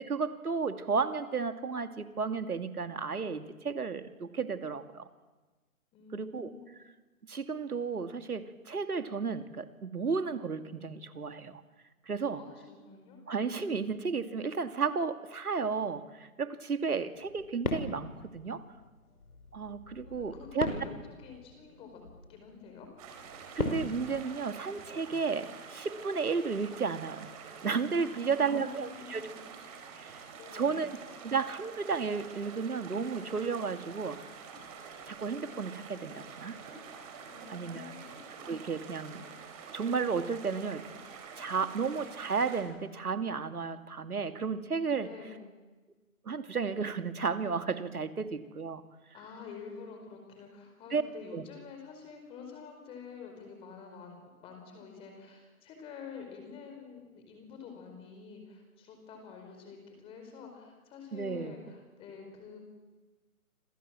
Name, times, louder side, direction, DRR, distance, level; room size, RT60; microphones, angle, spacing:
voice 1, 0.0-5.0 6.1-6.5 7.3-11.6 12.1-12.4 13.3-18.6 19.5-20.7 23.6-27.3 27.6-29.2 29.9-30.2 30.5-31.0 31.2-34.2 35.1-36.6 37.5-37.9 38.4-39.3 39.7-40.9 41.4-45.1 46.3-48.8 50.9-51.0 51.3-51.4 61.1-61.5, right 5 dB, 80° right, 9 dB, 2.5 m, -33 dB
voice 2, 5.9-6.7 12.3-13.2 20.0-22.0 22.3-22.9 28.0-29.3 30.3-30.8 37.3-38.1 45.0-45.4 49.1-62.7, left 6 dB, 10° left, 4 dB, 4.8 m, -48 dB
sound 1, 17.1-24.3, left 2 dB, 90° left, 5.6 m, -40 dB
sound 2, 23.0-42.6, right 6 dB, 25° right, 4.6 m, -47 dB
28.5 x 27.0 x 7.6 m, 1.3 s
hypercardioid pair, 160°, 44 cm